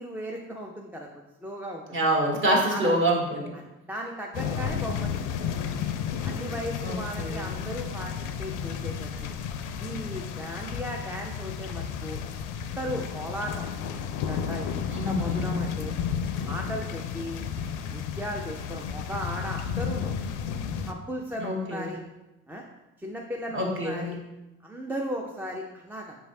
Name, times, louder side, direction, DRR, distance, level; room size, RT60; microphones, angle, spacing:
voice 1, 0.0-1.8 2.7-2.9 3.5-3.6 3.9-5.3 6.2-8.1 8.4-9.3 9.8-13.6 14.3-15.9 16.4-17.4 17.9-20.1 20.8-22.0 22.5-22.6 23.0-24.2 24.6-26.2, equal, 5° right, 0 dB, 0.4 m, -36 dB
voice 2, 1.9-3.5 6.8-7.5 14.9-15.7 21.4-21.9 23.5-24.1, right 1 dB, 30° right, -2 dB, 1.3 m, -26 dB
sound 1, 4.3-20.9, left 7 dB, 55° left, 0.5 m, -32 dB
5.5 x 3.1 x 2.7 m, 1.0 s
hypercardioid pair, 55°, 37 cm